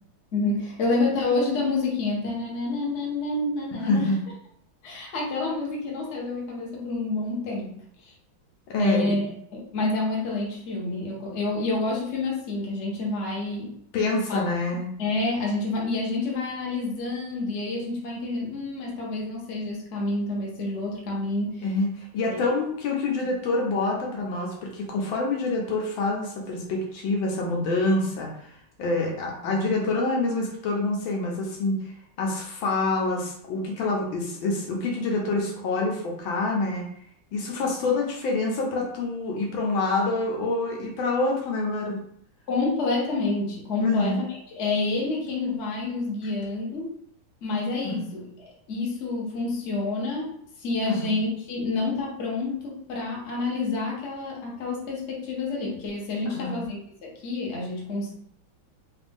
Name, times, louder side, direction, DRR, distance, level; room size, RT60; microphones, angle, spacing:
voice 1, 0.3-4.1 4.8-8.1 8.8-9.2 9.5-13.7 14.3-14.4 15.0-21.7 22.3-22.4 42.5-46.9 47.4-58.1, left 3 dB, 45° left, -3 dB, 1.0 m, -28 dB
voice 2, 3.8-4.2 8.7-9.2 13.9-14.9 21.6-36.9 37.3-42.0 43.8-44.2 47.8-48.0 50.8-51.2 56.2-56.6, left 2 dB, 75° left, -1 dB, 1.6 m, -26 dB
4.1 x 2.5 x 3.5 m, 0.67 s
omnidirectional pair, 2.2 m